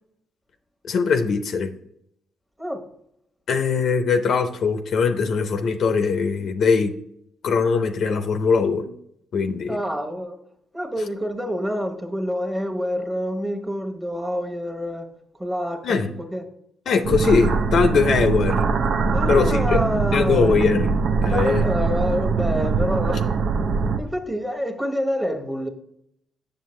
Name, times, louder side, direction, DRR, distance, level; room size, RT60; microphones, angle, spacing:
voice 1, 0.9-1.7 3.5-6.9 7.4-8.9 9.3-9.8 15.8-16.1 16.9-18.7 19.3-19.8 20.1-20.9 21.2-21.7, left 5 dB, 60° left, 8 dB, 0.6 m, -21 dB
voice 2, 9.7-10.4 10.7-15.1 15.4-16.5 19.1-20.6 21.3-23.3 23.8-25.7, equal, 10° right, 4 dB, 1.1 m, -27 dB
sound 1, 17.0-24.0, right 4 dB, 65° right, 0.5 m, -22 dB
7.4 x 6.6 x 3.2 m, 0.74 s
cardioid pair, 90°, 0 cm